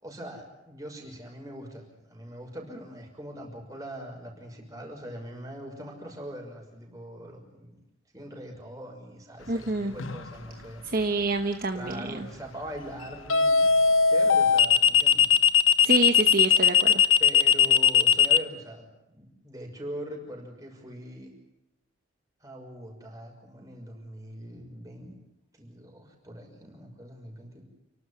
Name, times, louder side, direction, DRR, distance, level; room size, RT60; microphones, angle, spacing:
voice 1, 0.0-7.8 8.1-10.9 11.7-13.6 14.1-15.3 15.8-15.9 17.2-21.3 22.4-25.2 25.5-27.6, equal, 15° right, 0 dB, 6.1 m, -42 dB
voice 2, 9.5-9.9 10.8-12.3 15.8-17.0, right 2 dB, 45° right, 5 dB, 1.1 m, -27 dB
sound 1, 10.0-10.3 13.3-18.4, left 7 dB, 85° left, 1.0 m, -19 dB
29.0 x 12.5 x 9.9 m, 0.90 s
head